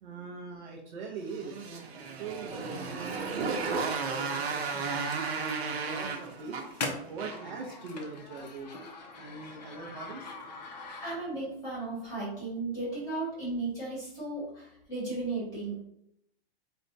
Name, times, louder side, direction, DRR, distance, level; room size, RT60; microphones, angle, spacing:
voice 1, 0.0-8.8 9.2-10.3, right 4 dB, 45° right, -1 dB, 0.5 m, -43 dB
Motorcycle, 1.3-7.6, right 4 dB, 80° right, 0.8 m, -34 dB
sound 1, 2.7-11.5, left 3 dB, 45° left, 0.5 m, -43 dB
voice 2, 11.0-15.9, right 3 dB, 10° left, -6 dB, 1.0 m, -35 dB
4.1 x 2.2 x 2.5 m, 0.76 s
hypercardioid pair, 170°, 31 cm